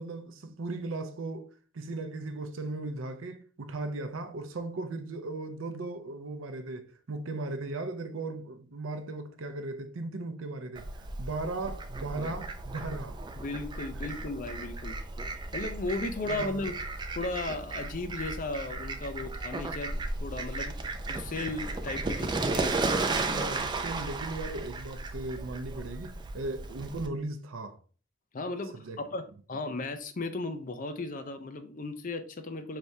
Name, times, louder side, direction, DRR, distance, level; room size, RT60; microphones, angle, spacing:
voice 1, 0.0-13.2 16.2-16.7 23.2-27.8 28.7-29.0, right 2 dB, 75° right, 0.5 m, -37 dB
Fowl, 10.8-27.1, right 3 dB, 20° right, 0.4 m, -35 dB
voice 2, 13.4-15.0 15.5-16.8 17.2-20.7 21.1-22.8 28.3-29.2 29.5-32.8, left 2 dB, 40° left, 0.5 m, -36 dB
4.5 x 3.3 x 2.7 m
head